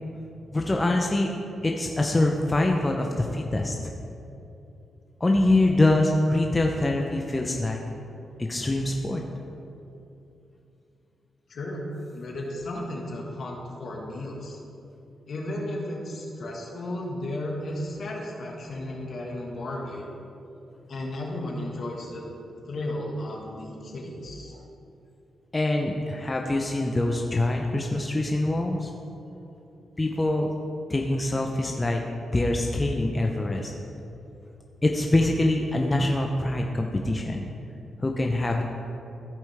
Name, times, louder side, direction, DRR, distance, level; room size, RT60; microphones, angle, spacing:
voice 1, 0.5-1.3 1.6-3.9 5.2-7.8 8.4-9.2 25.5-28.9 30.0-30.5 30.9-32.0 32.3-33.7 34.8-37.5 38.0-38.6, left 2 dB, 25° left, 1 dB, 0.7 m, -24 dB
voice 2, 11.5-11.8 12.1-14.6 15.3-20.0 20.9-22.3 22.7-24.6, left 1 dB, 65° left, -1 dB, 1.7 m, -34 dB
15.0 x 5.1 x 3.5 m, 2.8 s
cardioid pair, 60°, 0 cm